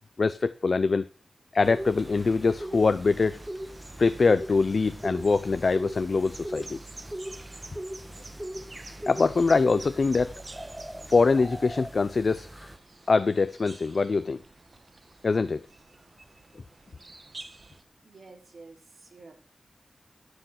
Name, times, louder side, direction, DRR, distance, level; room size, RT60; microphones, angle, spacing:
voice 1, 0.2-1.1 1.5-3.4 4.0-6.8 9.1-10.3 11.1-12.5 13.1-14.4 15.2-15.7, left 4 dB, 60° left, 12 dB, 0.6 m, -23 dB
sound 1, 1.6-12.8, right 1 dB, 10° right, 1.4 m, -40 dB
sound 2, 2.6-17.8, right 2 dB, 40° right, 1.3 m, -50 dB
voice 2, 18.0-19.4, right 3 dB, 70° right, 2 dB, 3.3 m, -50 dB
12.0 x 6.4 x 6.4 m, 0.35 s
wide cardioid pair, 80°, 0 cm